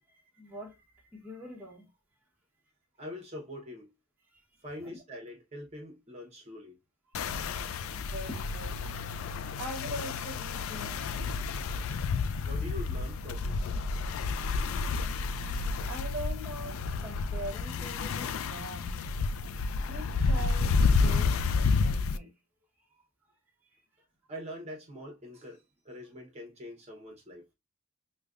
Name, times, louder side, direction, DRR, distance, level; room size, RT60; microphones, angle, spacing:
voice 1, 0.1-1.9 4.3-5.0 7.1-8.8 9.6-11.1 12.2-12.4 15.1-19.2 19.6-22.3 22.9-23.0 23.7-23.8, equal, 10° right, 0.9 m, -43 dB
voice 2, 3.0-3.9 4.6-6.8 12.4-13.7 24.3-27.4, left 1 dB, 30° right, 0.8 m, -44 dB
sound 1, 7.1-22.2, left 4 dB, 70° left, 0.3 m, -30 dB
5.0 x 2.2 x 2.4 m
head